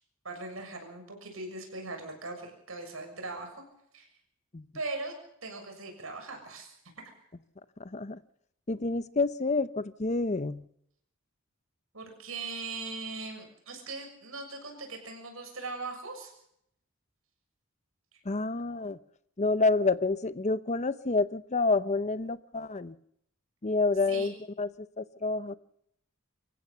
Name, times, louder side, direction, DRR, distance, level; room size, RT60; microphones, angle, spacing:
voice 1, 0.2-3.6 3.9-4.1 4.7-6.7 11.9-16.3 18.1-18.2 24.1-24.3, right 3 dB, 80° right, 4 dB, 6.8 m, -40 dB
voice 2, 7.8-8.2 8.7-10.7 18.2-19.0 19.4-23.0 23.6-25.5, left 3 dB, 35° left, 15 dB, 0.7 m, -28 dB
26.0 x 15.5 x 7.0 m, 0.72 s
head